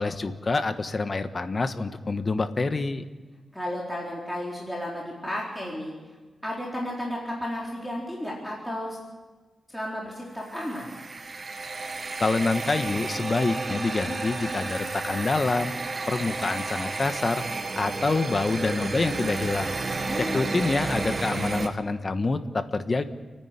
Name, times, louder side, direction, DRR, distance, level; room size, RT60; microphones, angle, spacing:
voice 1, 0.0-3.0 12.2-15.7 16.1-17.4 17.8-19.7 20.2-23.1, left 3 dB, 40° left, 9 dB, 1.3 m, -26 dB
voice 2, 3.5-5.9 6.4-9.0 9.7-10.9 20.0-20.5, left 1 dB, 5° left, -4 dB, 4.2 m, -33 dB
sound 1, 10.4-21.7, right 3 dB, 40° right, 1.5 m, -32 dB
29.5 x 10.5 x 9.5 m, 1.3 s
wide cardioid pair, 100°, 0 cm